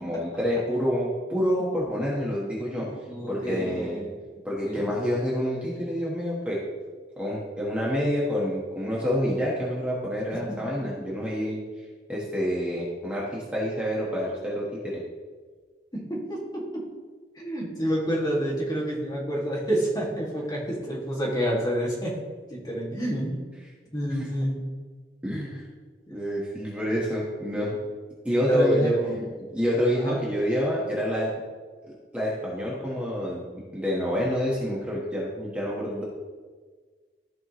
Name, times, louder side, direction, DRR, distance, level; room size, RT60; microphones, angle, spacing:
voice 1, 0.0-2.9 3.3-4.1 4.4-6.6 7.2-11.6 12.1-15.0 24.1-24.3 25.2-25.7 26.1-27.7 28.2-28.9 29.5-31.3 31.8-36.0, equal, 5° right, -6 dB, 1.3 m, -28 dB
voice 2, 2.8-4.2 4.6-4.9 10.5-10.6 11.0-11.1 15.9-16.9 17.4-22.2 22.5-23.4 23.9-24.6 28.5-29.3 30.0-30.2, equal, 25° left, -4 dB, 2.0 m, -28 dB
14.0 x 4.9 x 3.0 m, 1.5 s
head